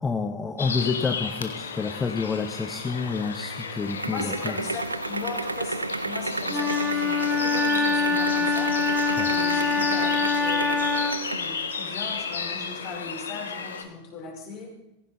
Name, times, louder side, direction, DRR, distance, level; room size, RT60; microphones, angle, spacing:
voice 1, 0.0-4.5 9.2-9.3, left 4 dB, 15° left, 7 dB, 0.9 m, -29 dB
sound 1, 0.6-13.8, left 5 dB, 70° left, 1.5 m, -34 dB
sound 2, 2.7-11.5, right 3 dB, 80° right, 0.4 m, -32 dB
voice 2, 4.1-8.7 9.2-10.8 11.2-14.7, left 4 dB, 40° left, -1 dB, 5.4 m, -38 dB
Wind instrument woodwind instrument, 6.5-11.3, left 4 dB, 5° right, 1.4 m, -24 dB
16.5 x 15.5 x 4.1 m, 0.92 s
figure-of-eight pair, 90°, 0 cm